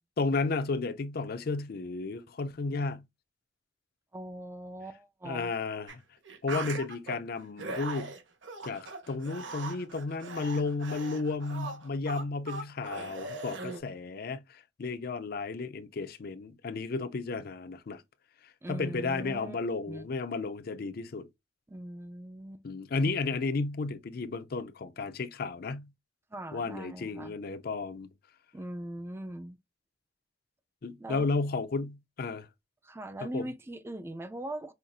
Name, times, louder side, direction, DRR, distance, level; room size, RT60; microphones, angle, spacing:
voice 1, 0.2-3.0 5.2-6.0 6.4-8.1 8.6-18.0 18.7-21.3 22.6-25.9 26.5-28.1 30.8-32.5 33.3-33.5, left 3 dB, 55° left, 0.5 m, -33 dB
voice 2, 4.1-5.5 18.6-19.6 19.9-20.1 21.7-22.6 26.3-27.4 28.5-29.6 31.0-31.3 32.8-34.7, right 1 dB, 15° right, 0.4 m, -40 dB
sound 1, 5.9-6.0 6.2-7.2 7.6-13.8, right 3 dB, 90° right, 1.1 m, -40 dB
5.6 x 2.6 x 2.4 m
head